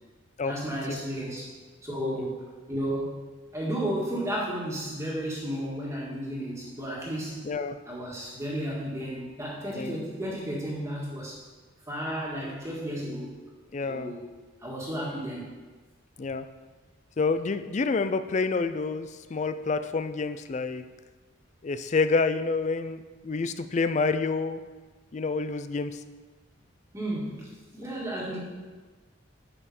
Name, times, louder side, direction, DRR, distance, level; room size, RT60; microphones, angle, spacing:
voice 1, 0.4-1.5 1.8-3.2 3.5-7.5 7.9-11.4 11.9-13.3 13.9-14.3 14.6-15.5 26.9-28.4, equal, 15° right, -4 dB, 1.9 m, -33 dB
voice 2, 7.4-7.8 9.8-10.0 13.7-14.1 16.2-16.5 17.2-20.8 21.6-24.6 25.1-26.0, left 4 dB, 35° left, 11 dB, 0.4 m, -28 dB
11.0 x 5.5 x 4.3 m, 1.3 s
head